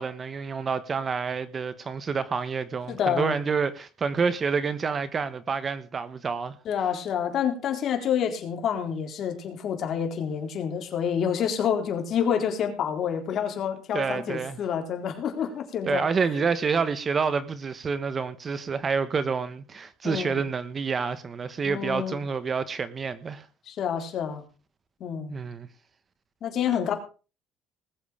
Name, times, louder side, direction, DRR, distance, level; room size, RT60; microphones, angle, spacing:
voice 1, 0.0-6.5 13.9-14.6 15.9-23.4 25.3-25.7, right 5 dB, 30° right, 1.3 m, -28 dB
voice 2, 2.9-3.3 6.7-16.1 20.0-20.4 21.6-22.2 23.7-24.4 25.0-25.3 26.4-26.9, left 8 dB, 50° left, 3.9 m, -28 dB
20.0 x 7.8 x 5.0 m
cardioid pair, 135°, 0 cm